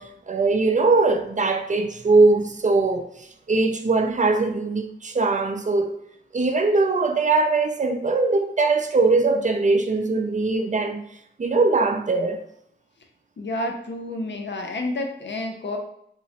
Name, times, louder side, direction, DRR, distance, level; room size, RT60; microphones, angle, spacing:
voice 1, 0.0-3.1 3.5-6.0 6.3-11.0 11.4-12.4, right 3 dB, 40° right, 0.4 m, -21 dB
voice 2, 13.4-15.8, left 2 dB, 70° left, 0.6 m, -29 dB
3.6 x 2.0 x 2.8 m
wide cardioid pair, 65°, 20 cm